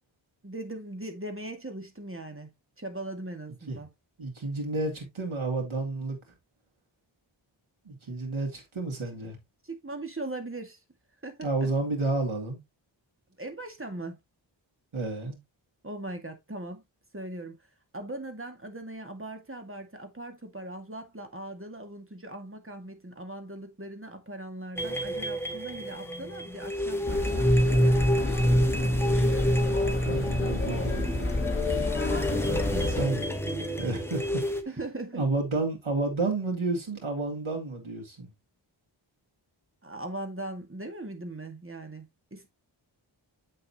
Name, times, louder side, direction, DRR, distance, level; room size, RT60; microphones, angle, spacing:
voice 1, 0.4-2.5 2.8-3.9 9.6-10.8 11.2-11.7 13.4-14.2 15.8-16.8 17.1-17.6 17.9-28.3 32.3-33.0 34.7-35.3 39.8-42.5, right 2 dB, 25° right, 2.2 m, -39 dB
voice 2, 4.2-6.2 7.9-9.4 11.4-12.6 14.9-15.4 30.0-31.1 33.0-34.2 35.1-38.3, right 3 dB, 90° right, 2.7 m, -31 dB
sound 1, 24.8-34.6, equal, 5° left, 1.6 m, -27 dB
sound 2, 27.1-33.0, left 2 dB, 25° left, 1.6 m, -31 dB
7.8 x 6.6 x 3.0 m
wide cardioid pair, 55°, 47 cm